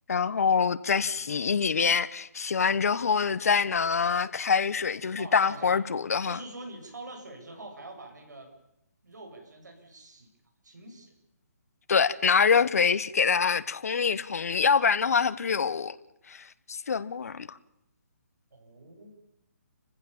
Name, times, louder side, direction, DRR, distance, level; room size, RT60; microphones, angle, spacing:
voice 1, 0.1-6.4 11.9-16.0 16.3-17.6, left 6 dB, 60° left, 1.2 m, -25 dB
voice 2, 5.2-5.8 6.2-8.5 9.0-10.3 10.6-11.1 18.5-19.1, right 2 dB, 85° right, 7.8 m, -45 dB
30.0 x 15.5 x 7.3 m
hypercardioid pair, 165°, 9 cm